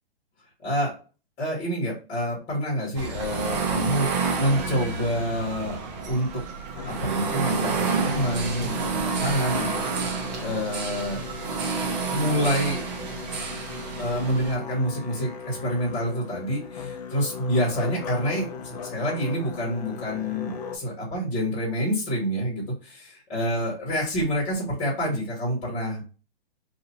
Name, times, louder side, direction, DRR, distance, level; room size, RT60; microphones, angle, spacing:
voice 1, 1.4-4.1 4.4-5.8 6.1-6.4 6.8-9.8 10.4-11.2 12.0-12.8 14.0-26.0, equal, 20° left, -5 dB, 1.3 m, -27 dB
sound 1, 3.0-14.5, right 5 dB, 45° right, 0.7 m, -29 dB
Musical instrument, 6.7-20.8, left 6 dB, 40° left, 0.5 m, -38 dB
2.7 x 2.7 x 4.1 m, 0.35 s
hypercardioid pair, 160°, 31 cm